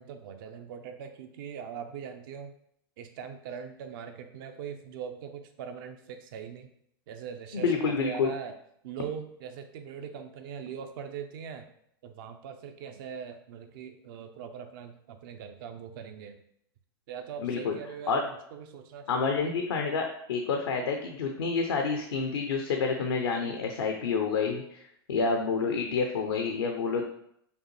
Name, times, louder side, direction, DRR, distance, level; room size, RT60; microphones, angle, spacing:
voice 1, 0.0-2.5 3.0-6.7 7.1-8.6 8.8-11.7 12.0-16.4 17.1-19.6, right 7 dB, 60° right, 7 dB, 0.5 m, -41 dB
voice 2, 7.5-8.3 17.4-17.8 18.1-18.2 19.1-24.8 25.1-27.0, left 5 dB, 80° left, 3 dB, 0.5 m, -28 dB
5.1 x 2.2 x 3.0 m, 0.70 s
hypercardioid pair, 100°, 13 cm